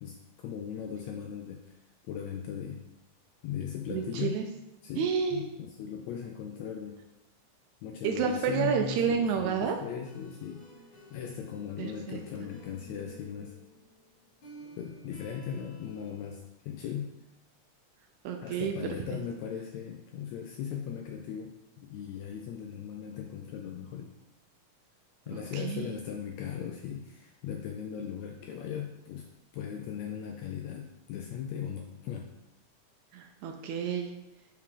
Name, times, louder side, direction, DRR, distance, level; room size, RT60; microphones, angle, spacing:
voice 1, 0.0-1.7 2.1-2.8 3.4-4.4 4.8-7.0 7.8-10.6 10.9-13.6 14.8-17.1 18.4-24.1 25.3-29.3 29.5-32.3, left 8 dB, 80° left, 2 dB, 1.6 m, -38 dB
voice 2, 3.9-4.5 5.0-5.5 8.0-9.8 11.8-12.2 18.3-18.7 19.1-19.2 25.3-25.9 33.1-34.1, right 6 dB, 80° right, 4 dB, 1.8 m, -30 dB
sound 1, 9.8-16.4, equal, 50° left, 2.1 m, -53 dB
5.6 x 4.8 x 3.7 m, 0.95 s
omnidirectional pair, 3.6 m